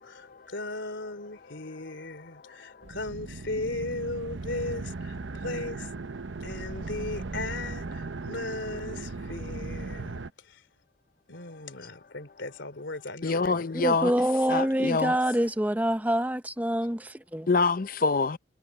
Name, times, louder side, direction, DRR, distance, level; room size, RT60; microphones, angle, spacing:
voice 1, 0.0-5.9 6.4-10.6 11.3-13.7, left 2 dB, 80° left, 3.0 m, -37 dB
voice 2, 2.2-2.9 11.5-11.6 13.2-14.1 14.5-15.2 17.5-18.4, left 4 dB, 50° left, 0.6 m, -27 dB
sound 1, 2.8-10.3, right 3 dB, 85° right, 0.8 m, -37 dB
voice 3, 13.7-17.5, right 1 dB, 10° right, 0.6 m, -26 dB
head